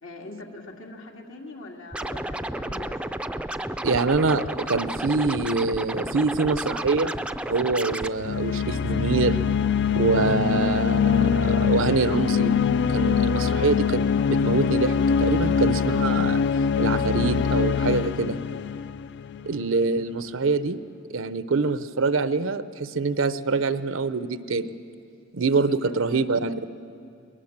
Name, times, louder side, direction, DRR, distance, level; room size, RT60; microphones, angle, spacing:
voice 1, 0.0-3.0 25.3-26.2, left 2 dB, 80° left, 0 dB, 2.4 m, -43 dB
Scratching (performance technique), 1.9-8.1, right 1 dB, 5° right, 0.4 m, -32 dB
voice 2, 3.8-7.2 7.5-9.4 10.0-12.5 12.9-14.0 14.3-16.4 16.8-18.4 19.4-20.8 21.1-24.7 25.3-26.5, right 4 dB, 80° right, 13 dB, 0.7 m, -25 dB
sound 1, 8.2-19.7, left 6 dB, 60° left, 0.4 m, -23 dB
22.5 x 19.5 x 7.4 m, 2.4 s
head